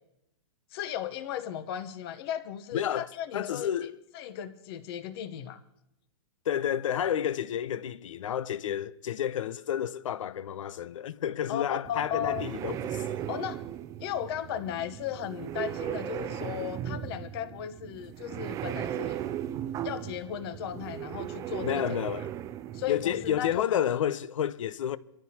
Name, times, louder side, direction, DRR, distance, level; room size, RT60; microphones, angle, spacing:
voice 1, 0.7-5.6 11.5-12.5 13.3-13.6 14.0-19.2 19.8-22.0 22.7-24.0, left 10 dB, 50° left, 1.0 m, -36 dB
voice 2, 2.7-3.1 3.3-4.0 6.5-13.2 21.6-22.3 22.9-25.0, left 10 dB, 80° left, 0.7 m, -30 dB
sound 1, 11.8-23.6, right 11 dB, 20° right, 0.4 m, -37 dB
25.0 x 13.5 x 2.9 m
hypercardioid pair, 145°, 16 cm